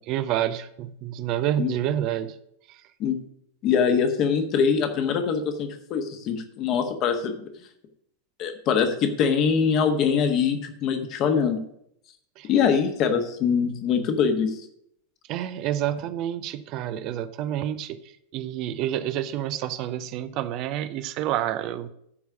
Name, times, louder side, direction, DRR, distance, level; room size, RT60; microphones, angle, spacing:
voice 1, 0.1-2.3 2.7-2.8 12.4-12.5 15.3-18.0 18.3-21.9, right 11 dB, 40° right, 12 dB, 0.5 m, -28 dB
voice 2, 3.6-7.5 8.4-11.6 12.5-14.6, left 6 dB, 35° left, 6 dB, 1.3 m, -23 dB
12.5 x 4.7 x 6.1 m, 0.73 s
figure-of-eight pair, 90°, 0 cm